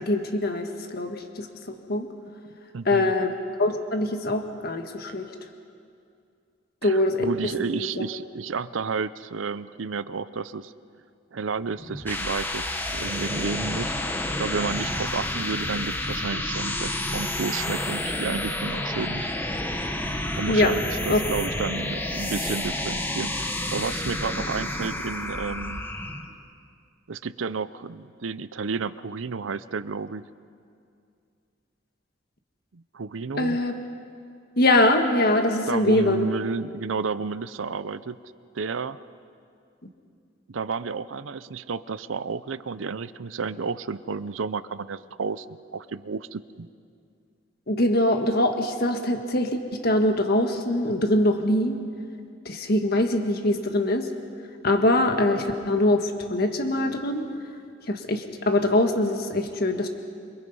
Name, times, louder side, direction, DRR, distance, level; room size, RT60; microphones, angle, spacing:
voice 1, 0.0-2.1 2.8-3.3 3.6-5.3 6.8-7.3 7.7-8.0 20.5-20.7 21.1-21.2 33.4-33.7 34.6-36.2 47.7-51.8 52.4-54.1 54.6-57.2 57.9-59.9, left 1 dB, 55° left, 5 dB, 1.5 m, -23 dB
voice 2, 2.7-3.1 6.8-10.7 11.3-12.7 12.9-13.9 14.4-19.3 20.4-25.9 27.1-30.3 32.7-33.6 35.7-38.2 38.5-39.0 40.5-46.7, right 5 dB, 85° right, 15 dB, 0.6 m, -31 dB
sound 1, 11.8-26.3, left 1 dB, 10° left, 1.2 m, -30 dB
28.0 x 23.5 x 5.5 m, 2.4 s
head